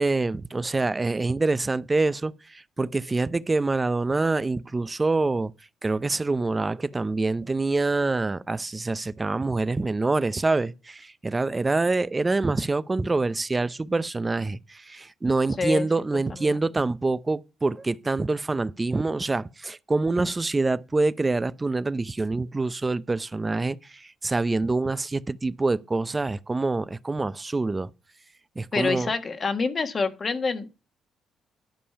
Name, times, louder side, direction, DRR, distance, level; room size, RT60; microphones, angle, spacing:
voice 1, 0.0-5.5 5.8-27.9 28.6-29.1, right 3 dB, 20° right, 0.6 m, -26 dB
voice 2, 28.7-30.7, left 4 dB, 40° left, 1.5 m, -27 dB
11.5 x 5.4 x 5.6 m
cardioid pair, 90°, 0 cm